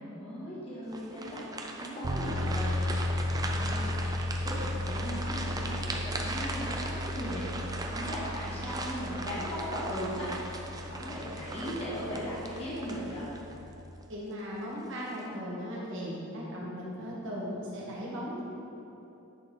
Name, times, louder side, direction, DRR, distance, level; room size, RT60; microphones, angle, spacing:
voice 1, 0.0-13.2, equal, 25° left, -9 dB, 1.6 m, -38 dB
sound 1, 0.9-13.5 14.0-14.2 14.8-15.2, right 2 dB, 15° right, 0.4 m, -39 dB
sound 2, 2.0-13.9, left 1 dB, 80° right, 0.6 m, -35 dB
voice 2, 14.1-18.4, equal, 60° right, -5 dB, 1.6 m, -37 dB
9.9 x 4.2 x 3.9 m, 3.0 s
head